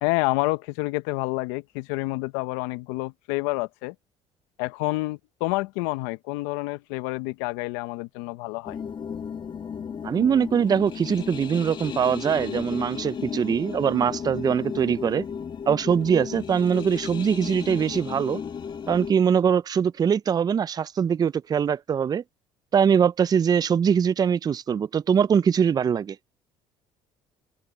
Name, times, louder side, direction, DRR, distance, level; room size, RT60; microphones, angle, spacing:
voice 1, 0.0-3.9 4.6-8.8, left 22 dB, 85° left, 0.9 m, -28 dB
sound 1, 8.7-19.1, left 7 dB, 40° left, 1.7 m, -34 dB
voice 2, 10.0-15.2 15.7-18.4 18.9-22.2 22.7-26.2, right 7 dB, 35° right, 0.5 m, -22 dB
open air
supercardioid pair, 80°, 12 cm